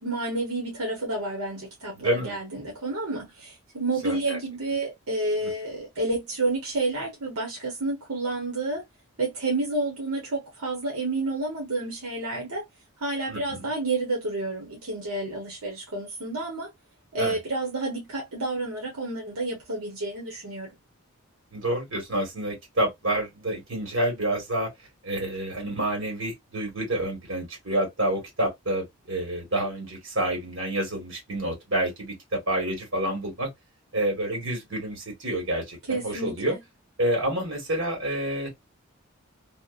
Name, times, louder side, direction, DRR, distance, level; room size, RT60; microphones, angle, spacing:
voice 1, 0.0-8.8 9.2-12.6 13.0-16.7 17.1-20.7 35.9-36.6, right 2 dB, 80° right, 0.9 m, -30 dB
voice 2, 2.0-2.4 4.0-4.4 5.4-5.5 13.3-13.7 17.2-17.4 21.5-24.7 25.0-33.5 33.9-36.6 37.0-38.5, right 1 dB, 60° right, 1.5 m, -28 dB
2.8 x 2.1 x 2.4 m
head